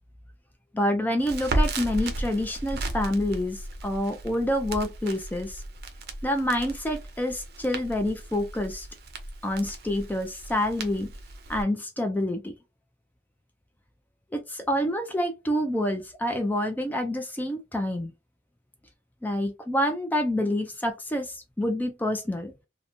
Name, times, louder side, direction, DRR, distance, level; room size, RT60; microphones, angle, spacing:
voice 1, 0.7-5.6 6.2-8.9 9.4-11.1 11.5-12.5 14.3-18.1 19.2-22.5, left 1 dB, 10° left, 0.3 m, -27 dB
Crackle, 1.2-11.6, right 1 dB, 60° right, 0.5 m, -34 dB
2.8 x 2.1 x 2.6 m
head